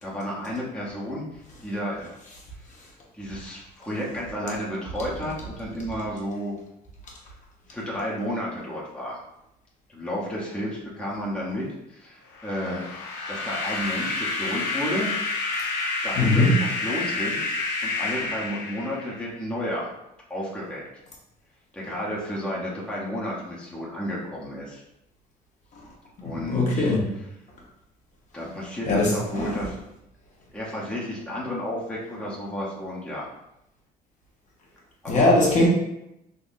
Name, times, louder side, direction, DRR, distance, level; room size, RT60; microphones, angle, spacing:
voice 1, 0.0-2.2 3.1-6.5 7.7-9.2 9.9-15.1 16.0-17.5 17.8-19.9 20.3-20.8 21.7-24.8 26.2-27.0 28.3-29.8 30.5-33.2 35.0-35.3, equal, 5° left, -6 dB, 0.8 m, -32 dB
sound 1, 12.3-19.3, left 3 dB, 85° left, 0.8 m, -29 dB
voice 2, 16.2-16.5 26.2-27.1 28.9-29.6 35.1-35.7, left 2 dB, 45° left, -3 dB, 1.0 m, -21 dB
3.6 x 2.7 x 2.6 m, 0.85 s
cardioid pair, 110°, 17 cm